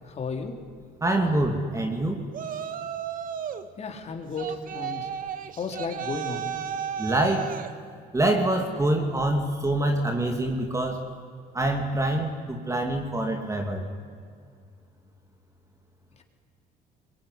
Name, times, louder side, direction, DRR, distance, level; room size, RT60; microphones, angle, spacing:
voice 1, 0.0-0.5 3.8-5.1 5.6-6.5 16.2-16.3, left 4 dB, 40° left, 4 dB, 3.5 m, -33 dB
voice 2, 1.0-2.2 7.0-7.5 8.1-11.0 11.5-13.8, right 1 dB, 20° right, 3 dB, 2.6 m, -25 dB
Yell, 2.3-3.7 4.4-7.7, right 9 dB, 55° right, 1.7 m, -34 dB
25.0 x 22.0 x 10.0 m, 2.3 s
cardioid pair, 110°, 17 cm